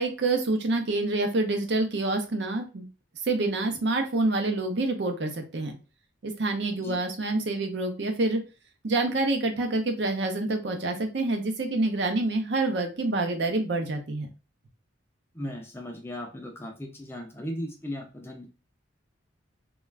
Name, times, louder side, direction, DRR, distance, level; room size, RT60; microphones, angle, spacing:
voice 1, 0.0-2.9 3.2-5.8 6.2-8.4 8.8-14.3, right 2 dB, 55° right, 4 dB, 0.6 m, -27 dB
voice 2, 15.3-18.5, equal, 10° left, 2 dB, 0.4 m, -37 dB
2.3 x 2.3 x 3.2 m, 0.31 s
head